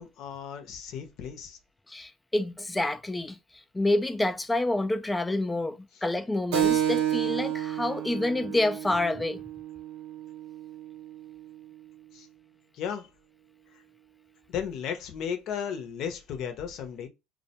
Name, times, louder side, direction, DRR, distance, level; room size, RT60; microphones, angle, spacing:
voice 1, 0.0-1.6 5.9-6.0 12.1-12.3 12.7-13.1 14.5-17.1, left 8 dB, 55° left, 0.7 m, -35 dB
voice 2, 1.9-3.4 3.7-9.4, left 2 dB, 10° left, 0.3 m, -28 dB
Keyboard (musical), 6.5-11.6, right 10 dB, 80° right, 0.5 m, -31 dB
2.2 x 2.1 x 2.8 m
supercardioid pair, 100°, 0 cm